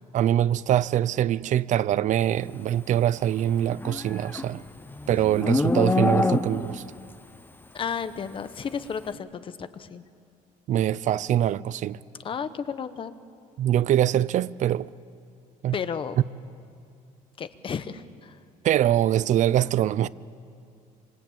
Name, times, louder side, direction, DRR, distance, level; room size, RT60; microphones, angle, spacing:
voice 1, 0.1-4.6 5.1-6.8 10.7-12.0 13.6-14.9 15.6-15.7 18.6-20.1, right 11 dB, 55° right, 0.6 m, -23 dB
Livestock farm animals working animals, 3.6-6.9, left 3 dB, 15° left, 0.9 m, -26 dB
voice 2, 7.7-10.0 12.2-13.1 15.7-16.2 17.4-18.4, left 7 dB, 35° left, 1.1 m, -33 dB
26.5 x 25.5 x 8.7 m
cardioid pair, 150°, 15 cm